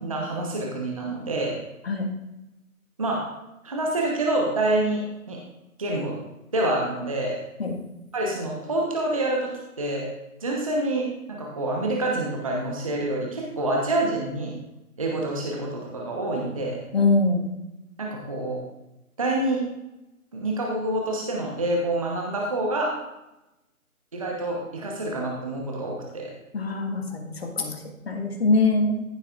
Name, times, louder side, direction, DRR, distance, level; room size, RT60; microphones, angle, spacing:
voice 1, 0.0-1.5 3.0-3.2 3.6-5.4 5.8-6.2 6.5-7.4 8.1-10.1 10.4-14.5 15.0-16.8 18.0-18.6 19.2-19.6 20.3-22.9 24.1-26.3, right 2 dB, 25° right, -2 dB, 1.0 m, -27 dB
voice 2, 16.9-17.5 26.5-29.0, left 3 dB, 45° left, 3 dB, 1.6 m, -23 dB
14.5 x 7.7 x 2.4 m, 0.94 s
figure-of-eight pair, 165°, 43 cm